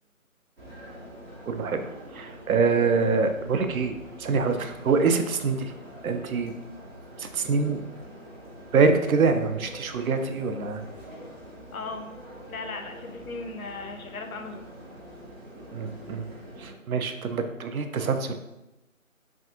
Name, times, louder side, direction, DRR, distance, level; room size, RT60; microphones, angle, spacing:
sound 1, 0.6-16.7, equal, 45° right, 1.0 m, -45 dB
voice 1, 1.4-5.7 6.0-6.5 7.2-7.8 8.7-10.8 15.7-16.3 16.6-18.3, right 4 dB, 85° right, 7 dB, 0.5 m, -25 dB
voice 2, 11.7-12.1 12.5-14.7, left 3 dB, 85° left, 5 dB, 0.6 m, -37 dB
3.4 x 2.3 x 2.8 m, 0.95 s
figure-of-eight pair, 170°, 41 cm